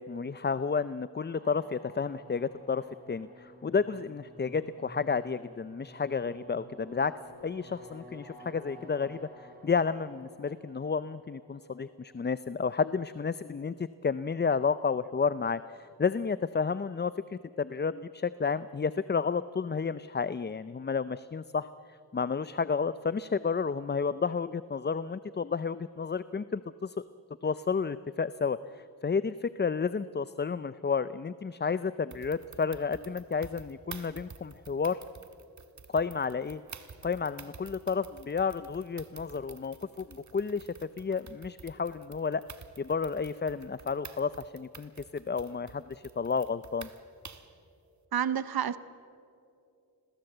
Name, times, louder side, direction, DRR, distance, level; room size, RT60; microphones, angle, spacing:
voice 1, 0.0-7.1 7.4-21.7 22.1-27.0 27.4-35.0 35.9-36.6 37.0-42.4 42.8-46.9, left 5 dB, 30° left, 15 dB, 0.6 m, -31 dB
sound 1, 1.3-12.5, equal, 25° right, 5.2 m, -53 dB
sound 2, 32.1-47.6, right 5 dB, 50° right, 1.7 m, -50 dB
voice 2, 48.1-48.8, right 9 dB, 70° right, 15 dB, 0.8 m, -29 dB
30.0 x 22.0 x 8.0 m, 2.6 s
cardioid pair, 70°, 37 cm